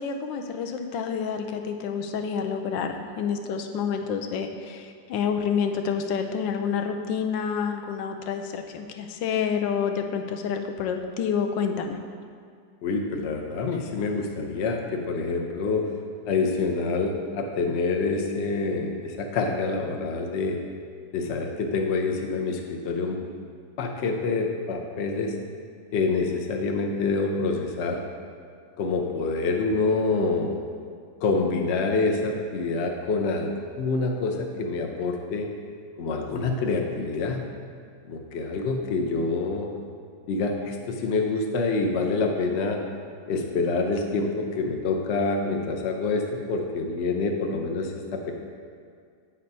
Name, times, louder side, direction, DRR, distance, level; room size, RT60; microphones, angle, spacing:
voice 1, 0.0-12.0, left 6 dB, 80° left, 5 dB, 1.3 m, -28 dB
voice 2, 12.8-15.9 16.3-20.6 21.1-23.2 23.8-25.3 25.9-28.0 28.8-30.6 31.2-35.5 36.0-37.4 38.1-39.7 40.3-42.8 43.3-48.3, left 3 dB, 60° left, 2 dB, 0.7 m, -26 dB
8.3 x 4.3 x 5.4 m, 2.2 s
omnidirectional pair, 2.0 m